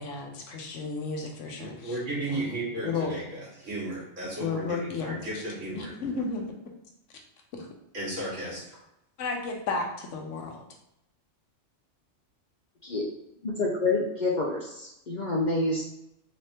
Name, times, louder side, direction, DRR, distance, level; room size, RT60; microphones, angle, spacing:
voice 1, 0.0-2.0 2.3-2.5 2.8-3.1 4.4-5.4 5.7-6.7 7.5-7.7 9.2-10.6, left 4 dB, 75° left, 2 dB, 1.0 m, -33 dB
voice 2, 1.6-5.9 7.9-8.6, right 2 dB, 80° right, -7 dB, 2.1 m, -34 dB
voice 3, 13.4-15.8, left 2 dB, 50° left, -2 dB, 0.6 m, -28 dB
4.0 x 3.4 x 2.8 m, 0.84 s
omnidirectional pair, 1.3 m